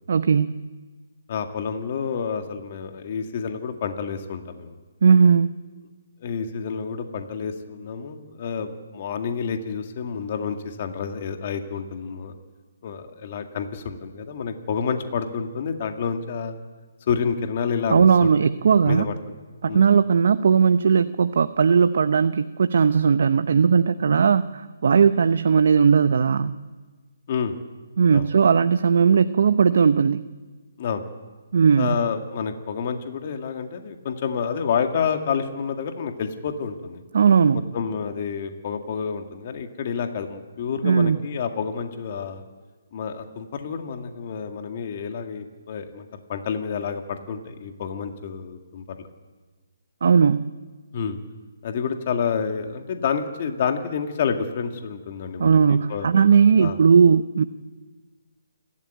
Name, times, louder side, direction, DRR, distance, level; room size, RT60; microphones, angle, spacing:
voice 1, 0.1-0.6 5.0-5.5 17.9-19.1 19.6-26.6 28.0-30.2 31.5-32.0 37.1-37.6 40.8-41.2 50.0-50.5 55.4-57.4, right 6 dB, 65° right, 11 dB, 0.7 m, -18 dB
voice 2, 1.3-4.8 6.2-12.3 12.8-16.5 17.1-18.3 18.9-19.1 19.7-19.8 27.3-27.6 28.1-28.3 30.8-31.0 31.8-37.0 37.7-42.4 42.9-49.1 50.9-51.2 51.6-56.1 56.6-56.8, left 6 dB, 45° left, 5 dB, 2.0 m, -29 dB
28.0 x 12.5 x 9.2 m, 1.4 s
hypercardioid pair, 155°, 0 cm